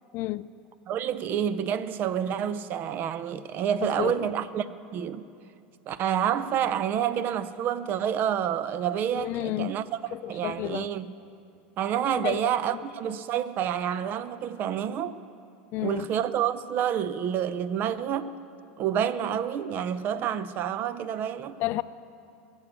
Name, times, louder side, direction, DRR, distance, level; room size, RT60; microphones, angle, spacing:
voice 1, 0.1-0.5 3.8-4.3 9.1-9.7 10.2-10.9 12.2-12.4 15.7-16.1 21.6-21.8, left 17 dB, 50° left, 0.4 m, -30 dB
voice 2, 0.9-4.7 4.9-5.3 5.9-11.2 11.8-15.2 15.8-18.4 18.8-21.6, right 9 dB, 40° right, 0.6 m, -28 dB
21.0 x 7.2 x 8.2 m
supercardioid pair, 125°, 5 cm